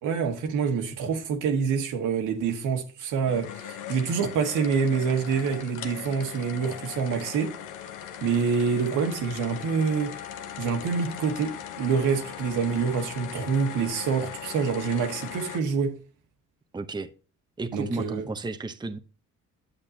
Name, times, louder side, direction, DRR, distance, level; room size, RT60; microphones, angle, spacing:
voice 1, 0.0-7.5 8.2-10.1 10.6-16.0 17.7-18.3, right 6 dB, 85° right, 1.6 m, -26 dB
sound 1, 3.2-15.6, left 9 dB, 90° left, 1.1 m, -39 dB
voice 2, 16.7-17.1 17.6-19.0, right 3 dB, 15° right, 0.7 m, -33 dB
8.7 x 8.0 x 2.7 m
cardioid pair, 90°, 30 cm